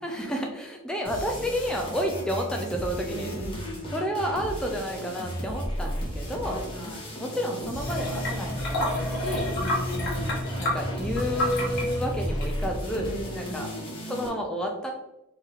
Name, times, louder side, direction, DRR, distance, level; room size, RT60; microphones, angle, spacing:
voice 1, 0.0-3.3 3.9-6.6 7.2-9.5 10.6-13.7 14.1-14.9, equal, 5° left, 1 dB, 0.3 m, -30 dB
sound 1, 1.0-14.3, equal, 25° left, 1.1 m, -35 dB
voice 2, 3.1-4.0 6.5-7.2 9.5-10.6 12.8-14.0, left 1 dB, 70° left, -1 dB, 1.1 m, -38 dB
sound 2, 7.8-12.8, left 1 dB, 50° left, 1.3 m, -29 dB
3.6 x 2.8 x 3.3 m, 0.92 s
head